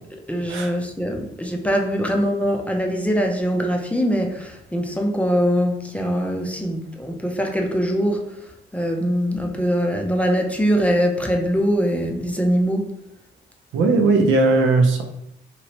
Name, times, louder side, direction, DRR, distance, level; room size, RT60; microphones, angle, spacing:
voice 1, 0.3-8.3 8.7-12.9, equal, 5° left, 1 dB, 0.6 m, -22 dB
voice 2, 13.7-15.0, right 3 dB, 75° right, 3 dB, 0.6 m, -17 dB
3.0 x 2.9 x 2.9 m, 0.83 s
cardioid pair, 90°, 20 cm